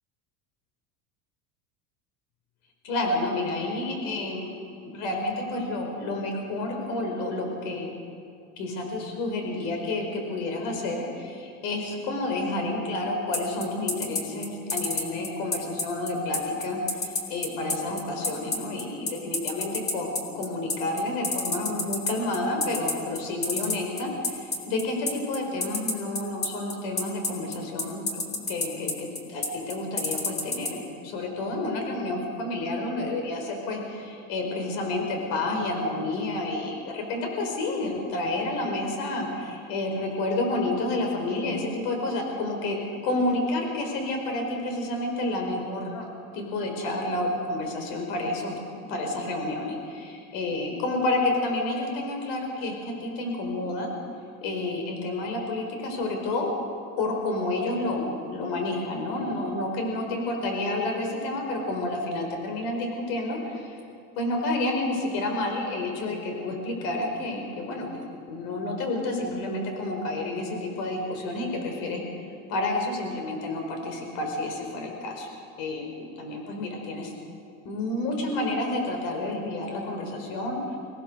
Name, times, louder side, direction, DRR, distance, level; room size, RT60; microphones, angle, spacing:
voice 1, 2.8-4.5 4.8-7.9 8.6-42.8 43.0-46.1 46.3-48.5 48.9-53.9 54.4-56.5 57.0-63.8 64.2-67.9 68.3-75.3 75.6-77.1 77.6-80.8, left 2 dB, 75° left, 2 dB, 5.0 m, -30 dB
sound 1, 13.3-30.7, left 3 dB, 25° left, 2.7 m, -28 dB
24.5 x 18.0 x 6.4 m, 2.5 s
cardioid pair, 140°, 39 cm